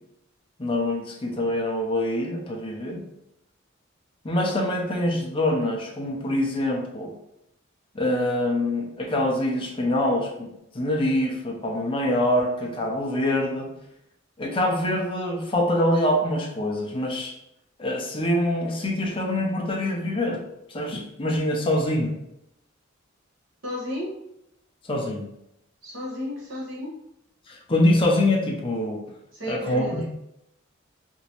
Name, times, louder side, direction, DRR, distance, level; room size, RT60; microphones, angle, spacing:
voice 1, 0.6-3.0 4.2-7.1 7.9-10.5 10.7-13.7 14.4-17.3 17.8-20.4 20.7-22.1 24.8-25.3 27.5-29.0 29.5-30.0, left 1 dB, 25° left, 1 dB, 0.5 m, -25 dB
voice 2, 23.6-24.2 25.8-26.9 29.3-30.1, left 1 dB, 65° right, -6 dB, 1.2 m, -33 dB
3.0 x 2.6 x 2.9 m, 0.81 s
head